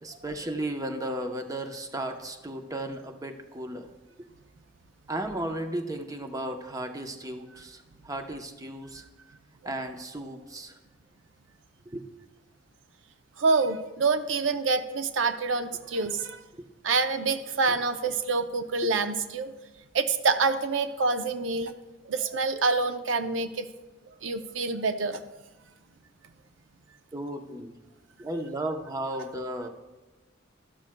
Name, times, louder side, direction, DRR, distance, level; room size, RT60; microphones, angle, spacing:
voice 1, 0.0-3.9 5.1-9.0 9.6-10.8 11.9-12.0 27.1-27.7 28.2-29.7, right 1 dB, 20° right, 5 dB, 0.8 m, -34 dB
voice 2, 13.4-16.4 16.8-19.5 19.9-21.7 22.1-23.7 24.2-25.2, right 4 dB, 85° right, 10 dB, 0.6 m, -26 dB
13.0 x 12.0 x 2.2 m, 1.2 s
head